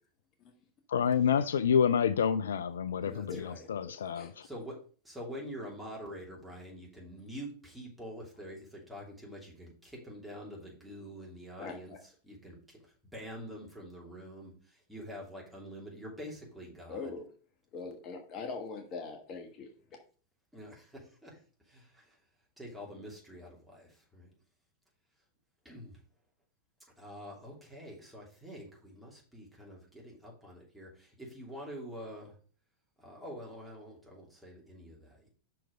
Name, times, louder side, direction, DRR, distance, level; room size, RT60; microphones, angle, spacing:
voice 1, 0.9-4.5, left 7 dB, 65° left, 13 dB, 0.3 m, -28 dB
voice 2, 3.0-3.7 4.4-4.8 5.0-17.1 20.5-21.4 21.7-22.2 22.6-24.3 25.6-26.0 27.0-32.3 33.0-35.3, equal, 5° right, -3 dB, 2.8 m, -46 dB
voice 3, 16.9-17.2 17.7-19.7, left 4 dB, 35° left, 3 dB, 1.2 m, -41 dB
5.9 x 4.6 x 5.0 m, 0.41 s
figure-of-eight pair, 90°, 0 cm